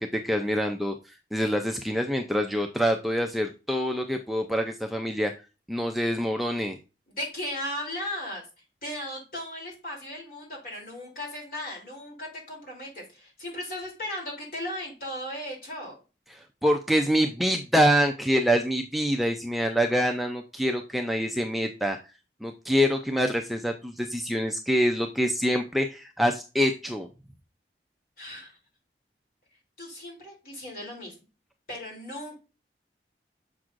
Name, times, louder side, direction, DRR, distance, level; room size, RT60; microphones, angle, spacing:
voice 1, 0.0-5.3 5.7-6.8 16.6-22.0 22.4-27.1, equal, ahead, 3 dB, 0.4 m, -25 dB
voice 2, 7.1-8.4 8.8-16.0 28.2-28.6 29.8-31.1 31.7-32.4, left 1 dB, 50° left, -1 dB, 3.0 m, -36 dB
7.0 x 6.1 x 2.5 m, 0.30 s
head